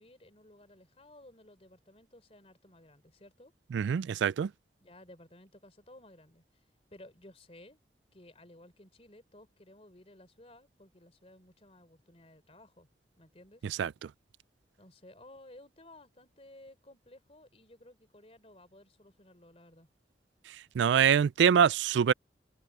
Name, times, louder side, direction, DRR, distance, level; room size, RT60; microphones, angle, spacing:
voice 1, 0.0-3.5 4.8-6.6 6.9-7.8 8.1-12.9 13.2-13.7 14.8-19.9, left 1 dB, 35° left, 3.7 m, -56 dB
voice 2, 3.7-4.5 13.8-13.9 20.8-22.1, right 8 dB, 85° right, 0.3 m, -24 dB
open air
head